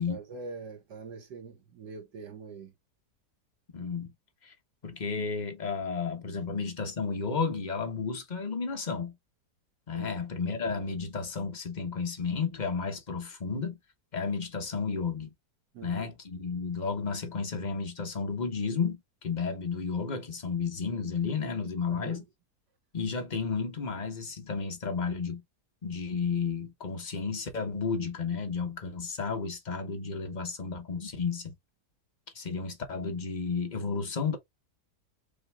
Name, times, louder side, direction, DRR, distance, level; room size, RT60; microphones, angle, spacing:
voice 1, 0.0-2.7 9.9-10.1 15.7-16.1 21.9-22.2, right 4 dB, 90° right, 2.0 m, -43 dB
voice 2, 3.7-4.1 4.4-4.5 4.8-9.1 9.9-13.8 14.1-15.3 15.8-22.2 22.9-25.4 25.8-31.5 32.3-34.4, left 5 dB, 30° left, 1.0 m, -32 dB
5.2 x 3.5 x 2.3 m
omnidirectional pair, 1.8 m